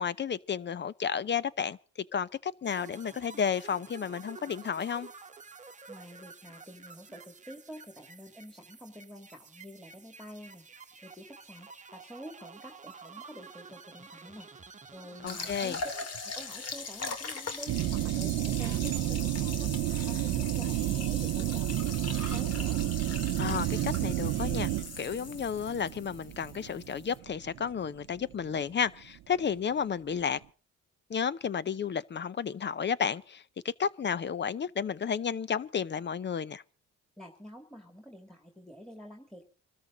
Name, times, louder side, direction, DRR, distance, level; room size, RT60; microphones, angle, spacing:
voice 1, 0.0-1.8 2.1-5.1 15.2-15.8 23.4-24.7 25.0-30.4 31.1-36.6, left 7 dB, 35° left, 0.7 m, -32 dB
sound 1, 2.6-16.1, right 5 dB, 25° right, 1.2 m, -50 dB
voice 2, 5.9-10.7 11.0-14.5 14.9-16.0 16.2-19.7 20.1-22.8 37.2-39.4, equal, ahead, 2.5 m, -48 dB
sound 2, 15.3-27.2, left 4 dB, 55° left, 2.6 m, -40 dB
sound 3, 17.7-28.6 28.8-28.9, right 15 dB, 85° right, 0.8 m, -31 dB
24.0 x 13.5 x 4.0 m
cardioid pair, 90°, 30 cm